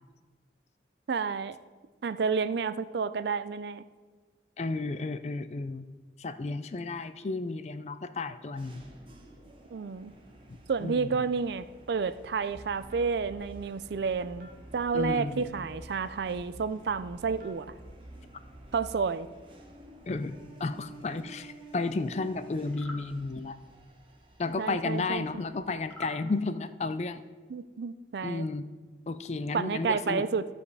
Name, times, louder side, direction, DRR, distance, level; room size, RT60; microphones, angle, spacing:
voice 1, 1.1-1.6 2.0-3.8 9.7-10.1 10.7-17.7 18.7-19.3 24.6-25.3 27.5-28.5 29.5-30.5, right 5 dB, 70° right, 13 dB, 0.4 m, -30 dB
voice 2, 4.6-5.9 6.2-8.8 10.8-11.1 14.9-15.5 20.1-23.6 24.4-27.2 28.2-28.7 29.1-30.2, left 3 dB, 40° left, 12 dB, 0.4 m, -33 dB
sound 1, 8.6-26.0, right 2 dB, 30° right, 1.2 m, -53 dB
sound 2, 12.5-18.9, right 1 dB, 50° right, 1.4 m, -49 dB
sound 3, 22.7-23.1 25.8-26.2, left 1 dB, 10° left, 1.3 m, -43 dB
14.0 x 5.3 x 4.8 m, 1.4 s
head